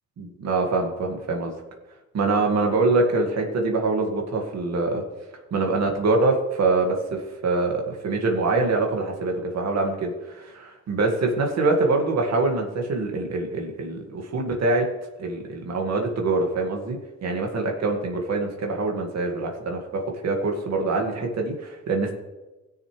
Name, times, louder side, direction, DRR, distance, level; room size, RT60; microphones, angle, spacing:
voice 1, 0.2-1.5 2.1-5.0 5.5-14.9 15.2-22.1, right 3 dB, 60° right, 1 dB, 2.1 m, -24 dB
17.5 x 6.7 x 3.4 m, 1.1 s
cardioid pair, 90°, 30 cm